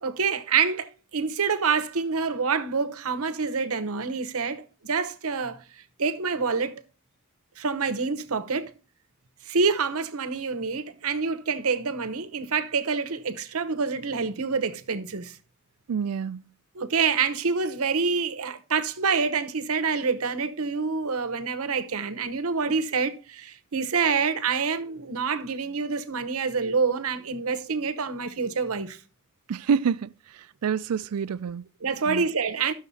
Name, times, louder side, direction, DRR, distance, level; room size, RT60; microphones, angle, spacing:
voice 1, 0.0-5.6 6.0-6.8 7.6-8.7 9.4-15.4 16.7-29.0 31.8-32.7, right 5 dB, 75° right, 0.9 m, -27 dB
voice 2, 15.9-16.4 29.5-30.1 30.6-31.6 32.1-32.2, right 6 dB, 90° right, 0.4 m, -27 dB
12.5 x 6.5 x 4.1 m
head